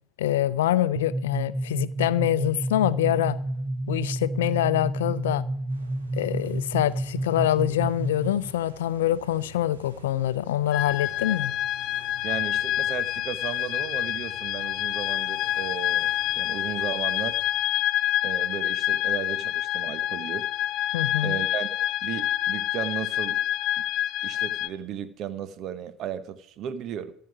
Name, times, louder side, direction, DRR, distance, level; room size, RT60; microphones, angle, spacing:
voice 1, 0.2-3.4 3.9-5.5 6.1-11.5 20.9-21.4, left 13 dB, 75° left, 0.5 m, -25 dB
sound 1, 1.0-8.5, right 1 dB, 15° right, 0.5 m, -30 dB
sound 2, 5.7-17.4, right 2 dB, 85° right, 1.7 m, -49 dB
sound 3, 10.7-24.7, left 13 dB, 45° left, 1.0 m, -27 dB
voice 2, 12.2-16.1 16.4-17.4 18.2-20.5 21.2-21.7 22.0-23.4 24.2-27.1, right 9 dB, 50° right, 1.1 m, -35 dB
14.0 x 5.7 x 8.9 m
hypercardioid pair, 70°, 0 cm